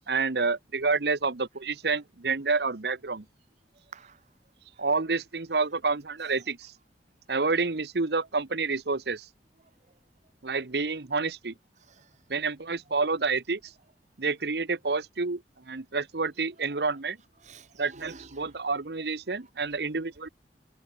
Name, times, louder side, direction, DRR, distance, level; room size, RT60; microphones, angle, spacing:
voice 1, 0.1-3.2 4.8-6.7 7.3-9.3 10.4-11.5 12.3-13.7 14.2-15.4 15.7-17.2 17.8-20.3, right 4 dB, 65° right, 1.0 m, -29 dB
voice 2, 3.9-4.2 4.7-4.8 6.2-6.5 11.8-12.2 17.4-18.6, right 4 dB, 45° right, 1.4 m, -50 dB
head